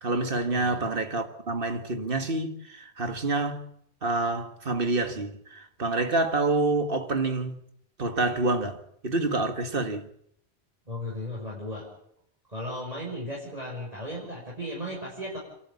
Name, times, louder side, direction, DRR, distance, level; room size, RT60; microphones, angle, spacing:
voice 1, 0.0-3.6 4.0-7.6 8.0-8.8 9.0-10.1, right 2 dB, 60° right, 2.2 m, -27 dB
voice 2, 10.9-11.9 12.5-15.4, equal, 35° right, 6.4 m, -35 dB
29.0 x 13.0 x 8.7 m
omnidirectional pair, 1.1 m